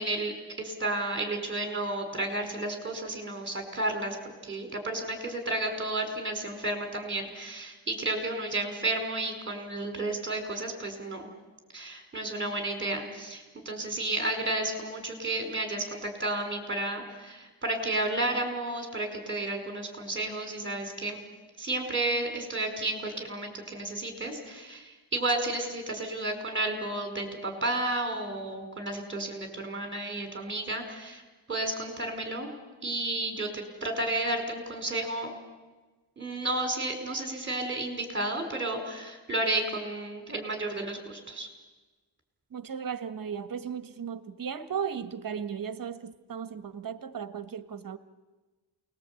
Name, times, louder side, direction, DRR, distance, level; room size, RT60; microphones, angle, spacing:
voice 1, 0.0-4.2 4.4-11.3 11.7-21.2 21.6-31.2 31.5-32.5 32.8-35.3 36.2-41.5, right 2 dB, 30° right, 4.8 m, -32 dB
voice 2, 42.5-48.0, right 7 dB, 50° right, 1.4 m, -36 dB
28.0 x 20.5 x 8.4 m
wide cardioid pair, 130°, 42 cm